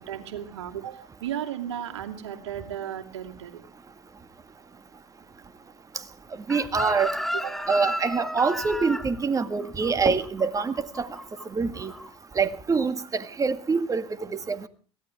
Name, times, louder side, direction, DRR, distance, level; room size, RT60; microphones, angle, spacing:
voice 1, 0.1-3.6 7.3-7.6, right 10 dB, 80° right, 2.7 m, -35 dB
Chicken rooster, 6.5-11.4 11.7-12.1, equal, ahead, 2.2 m, -33 dB
voice 2, 6.5-7.1 7.7-11.1 11.5-11.9 12.3-14.7, right 5 dB, 25° right, 1.7 m, -25 dB
23.0 x 16.5 x 3.5 m
hypercardioid pair, 75°, 14 cm